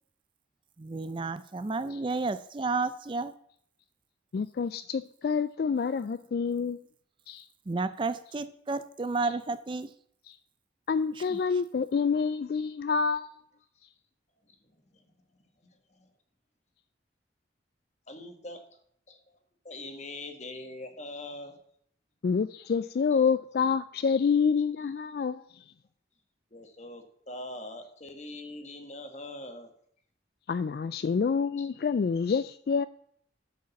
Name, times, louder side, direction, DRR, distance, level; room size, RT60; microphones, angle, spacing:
voice 1, 0.8-3.3 7.7-9.9 11.2-11.4, right 3 dB, 25° right, 0.4 m, -32 dB
voice 2, 4.3-6.8 7.3-7.5 10.3-10.4 10.9-13.3 22.2-25.6 30.5-32.9, left 5 dB, 55° left, 0.3 m, -27 dB
voice 3, 14.4-16.1 18.1-18.6 19.1-19.4 19.6-21.6 23.1-23.3 24.8-24.9 26.5-29.7 31.6-31.7, left 2 dB, 40° left, 1.5 m, -43 dB
12.5 x 5.1 x 7.0 m
head